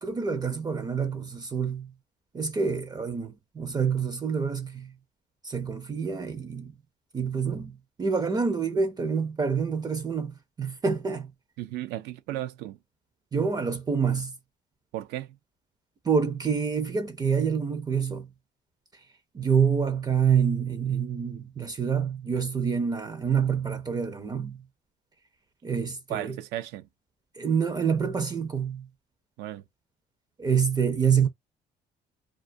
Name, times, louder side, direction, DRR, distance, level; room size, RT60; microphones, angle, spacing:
voice 1, 0.0-1.9 2.3-4.9 5.4-6.7 7.1-11.3 13.3-14.3 16.0-18.3 18.9-19.0 19.3-24.6 25.6-26.4 27.3-28.9 30.4-31.3, right 6 dB, 25° right, 0.4 m, -27 dB
voice 2, 11.6-12.8 14.9-15.4 26.1-26.9 29.4-29.6, right 13 dB, 85° right, 0.4 m, -35 dB
2.3 x 2.1 x 2.5 m
cardioid pair, 110°, 17 cm